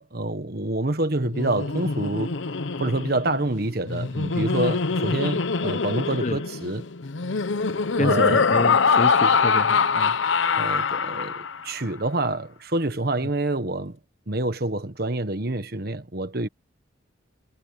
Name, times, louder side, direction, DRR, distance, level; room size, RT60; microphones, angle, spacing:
voice 1, 0.0-2.4 2.8-6.9 8.0-8.4 10.6-14.0 14.3-16.5, right 2 dB, 50° right, 1.4 m, -27 dB
Laughter, 1.2-11.7, left 5 dB, 75° left, 0.8 m, -24 dB
voice 2, 8.0-10.1, left 2 dB, 35° left, 0.9 m, -28 dB
head